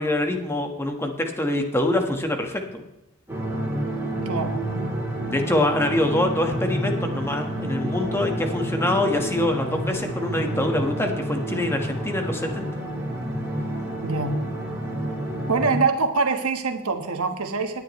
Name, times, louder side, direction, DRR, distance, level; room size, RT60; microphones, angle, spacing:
voice 1, 0.0-2.8 5.3-12.7, left 1 dB, 10° left, 4 dB, 1.5 m, -25 dB
sound 1, 3.3-15.7, right 1 dB, 10° right, 4.0 m, -29 dB
voice 2, 4.2-4.6 14.0-14.4 15.5-17.8, right 4 dB, 85° right, 6 dB, 1.4 m, -24 dB
17.5 x 10.0 x 3.2 m, 0.92 s
head